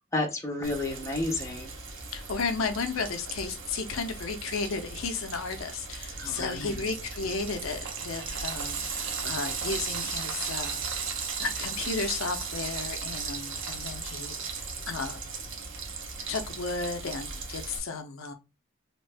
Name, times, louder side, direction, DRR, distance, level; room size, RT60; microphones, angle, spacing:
voice 1, 0.1-1.7 6.2-6.7, left 2 dB, 15° left, 0.9 m, -31 dB
Frying (food), 0.6-17.8, right 5 dB, 60° right, 0.8 m, -36 dB
voice 2, 2.1-10.8 11.4-15.3 16.3-18.3, left 4 dB, 75° left, 0.6 m, -34 dB
2.9 x 2.6 x 3.2 m
head